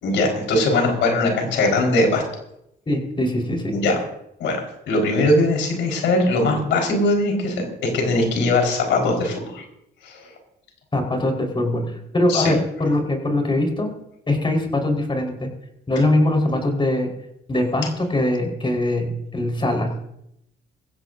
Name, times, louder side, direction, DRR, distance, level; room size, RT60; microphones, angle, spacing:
voice 1, 0.0-2.2 3.7-4.0 4.4-4.6 4.9-7.6 7.9-9.6 10.0-10.2 12.3-12.5, left 2 dB, 85° left, 2 dB, 4.8 m, -20 dB
voice 2, 2.9-3.7 10.9-13.9 14.3-15.5 15.9-17.1 17.5-19.9, left 1 dB, 25° left, 2 dB, 4.6 m, -22 dB
21.0 x 16.0 x 2.7 m, 0.78 s
cardioid pair, 95°, 19 cm